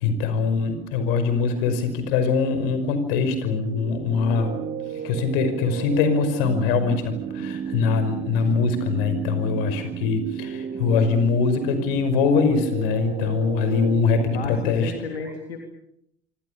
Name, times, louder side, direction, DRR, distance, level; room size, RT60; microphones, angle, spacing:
voice 1, 0.0-4.6 4.9-14.9, left 4 dB, 65° left, 10 dB, 5.6 m, -23 dB
sound 1, 3.7-14.0, right 7 dB, 35° right, 2.5 m, -33 dB
voice 2, 14.3-15.6, left 4 dB, 80° left, 3 dB, 3.3 m, -33 dB
27.0 x 25.0 x 7.0 m, 0.77 s
figure-of-eight pair, 65°, 31 cm